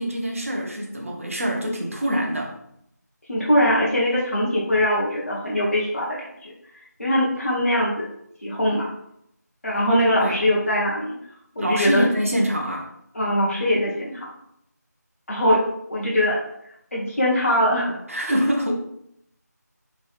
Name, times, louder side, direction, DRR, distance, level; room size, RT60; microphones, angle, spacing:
voice 1, 0.0-2.5 9.9-10.4 11.6-12.9 18.1-18.7, equal, 50° right, -1 dB, 0.7 m, -24 dB
voice 2, 3.3-6.5 7.0-8.1 8.4-8.9 9.6-11.2 11.6-12.0 13.1-14.3 15.3-15.6 15.9-16.4 16.9-17.9, left 1 dB, 50° left, -5 dB, 0.6 m, -22 dB
3.2 x 3.0 x 2.4 m, 0.75 s
figure-of-eight pair, 180°, 10 cm